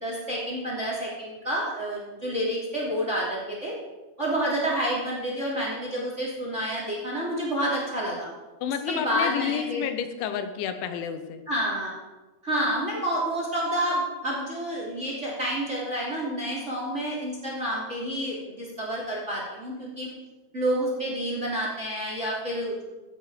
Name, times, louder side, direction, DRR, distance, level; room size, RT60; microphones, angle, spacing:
voice 1, 0.0-3.7 4.2-8.3 8.9-9.8 11.5-11.9 12.4-20.1 20.5-22.8, equal, 20° right, -3 dB, 2.6 m, -29 dB
voice 2, 8.6-11.4, left 8 dB, 80° left, 9 dB, 3.2 m, -30 dB
16.5 x 9.8 x 4.9 m, 1.1 s
omnidirectional pair, 5.3 m